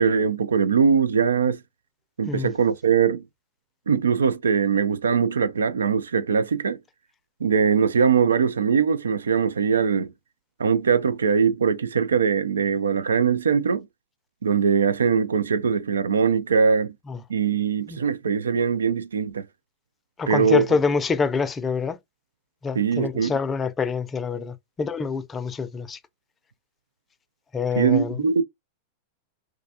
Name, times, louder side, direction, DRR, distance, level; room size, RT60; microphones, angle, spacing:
voice 1, 0.0-1.6 2.2-3.2 3.9-6.8 7.4-10.1 10.6-13.9 14.4-17.0 17.3-19.5 20.3-20.7 22.7-23.3 27.8-28.4, right 6 dB, 80° right, 0.3 m, -21 dB
voice 2, 20.2-22.0 22.6-26.0 27.5-28.2, left 5 dB, 20° left, 0.5 m, -26 dB
2.3 x 2.2 x 2.7 m
hypercardioid pair, 100°, 0 cm